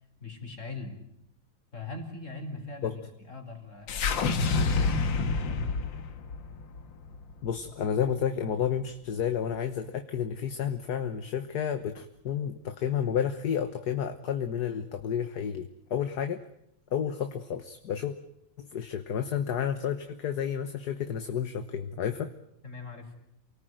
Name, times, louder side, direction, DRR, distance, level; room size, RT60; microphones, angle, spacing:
voice 1, 0.2-1.0 1.7-5.6 22.6-23.1, left 3 dB, 40° left, 5 dB, 4.6 m, -41 dB
sound 1, 3.9-8.2, left 4 dB, 85° left, 2.1 m, -29 dB
voice 2, 7.4-16.4 16.9-18.1 18.6-22.3, left 8 dB, 60° left, 8 dB, 1.7 m, -31 dB
28.5 x 19.0 x 9.2 m, 0.79 s
omnidirectional pair, 2.0 m